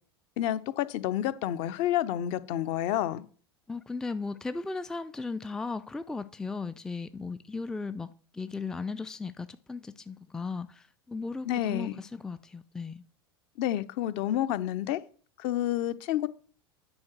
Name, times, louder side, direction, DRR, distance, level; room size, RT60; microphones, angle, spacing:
voice 1, 0.4-3.3 11.4-12.0 13.6-15.0 15.4-16.3, left 12 dB, 45° left, 0.7 m, -29 dB
voice 2, 3.7-13.0, left 4 dB, 5° left, 0.4 m, -36 dB
9.7 x 5.0 x 6.1 m
figure-of-eight pair, 80°, 13 cm